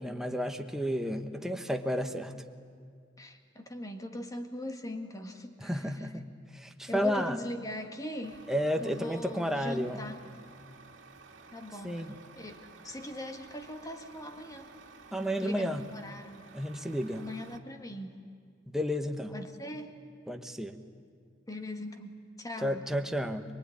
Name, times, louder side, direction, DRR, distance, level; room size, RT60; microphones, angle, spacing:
voice 1, 0.0-2.3 5.6-7.4 8.5-10.0 11.8-12.2 15.1-15.9 16.5-17.3 18.7-19.3 20.3-20.8 22.6-23.4, equal, ahead, 5 dB, 1.2 m, -32 dB
voice 2, 3.2-6.1 6.9-8.4 8.8-10.2 11.5-12.1 12.4-12.6 12.8-14.7 15.4-16.4 17.2-18.2 19.3-20.0 21.5-22.8, left 1 dB, 20° left, 5 dB, 1.8 m, -40 dB
Truck, 8.2-17.6, right 4 dB, 80° right, 2.0 m, -53 dB
23.5 x 23.5 x 9.9 m, 2.2 s
head